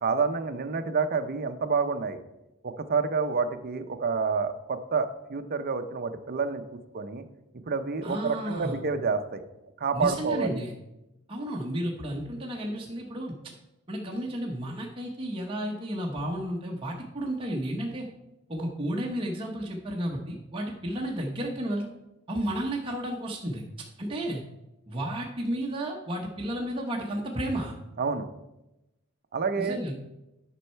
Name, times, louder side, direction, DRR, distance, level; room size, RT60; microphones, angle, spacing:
voice 1, 0.0-2.2 2.6-7.2 7.7-9.4 9.8-10.6 28.0-28.3 29.3-29.8, right 5 dB, 45° right, 8 dB, 0.6 m, -28 dB
voice 2, 8.0-8.8 9.9-10.7 11.3-13.3 13.9-18.1 18.5-21.9 22.3-23.6 24.0-24.4 24.9-27.7 29.6-29.9, right 1 dB, 25° right, -2 dB, 1.0 m, -32 dB
9.9 x 5.5 x 4.5 m, 0.95 s
head